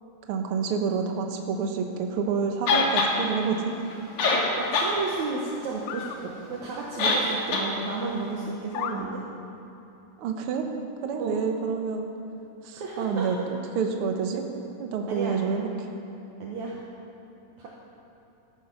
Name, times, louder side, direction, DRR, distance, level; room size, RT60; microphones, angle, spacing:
voice 1, 0.3-3.7 10.2-10.7 11.0-12.1 12.6-14.4 14.8-15.7, right 5 dB, 85° right, 4 dB, 1.2 m, -28 dB
sound 1, 2.7-3.1 3.9-4.0 4.2-4.9 5.3-5.4 7.0-7.3 7.5-7.7, left 3 dB, 60° left, 2.7 m, -22 dB
sound 2, 3.3-3.4 4.4-4.5 5.9-6.2 7.0-7.1 7.7-7.8 8.7-9.0, left 10 dB, 85° left, 2.4 m, -34 dB
voice 2, 4.6-9.2 11.2-11.4 12.7-13.5 15.1-15.6 16.4-16.8 17.6-17.7, right 4 dB, 65° right, -3 dB, 2.3 m, -32 dB
13.5 x 13.0 x 5.5 m, 2.9 s
omnidirectional pair, 4.0 m